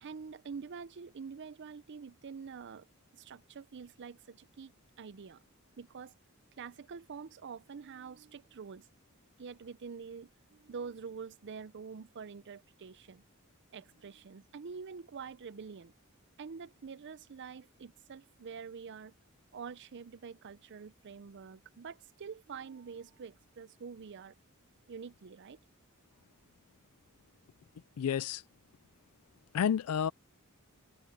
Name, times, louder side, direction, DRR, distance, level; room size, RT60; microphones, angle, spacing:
voice 1, 0.0-2.9 3.1-5.4 5.8-6.1 6.6-8.9 9.4-13.2 13.7-15.9 16.4-19.1 19.5-24.4 24.9-25.6, right 5 dB, 55° right, 0.5 m, -46 dB
voice 2, 28.0-28.4 29.5-30.1, left 8 dB, 85° left, 0.4 m, -30 dB
head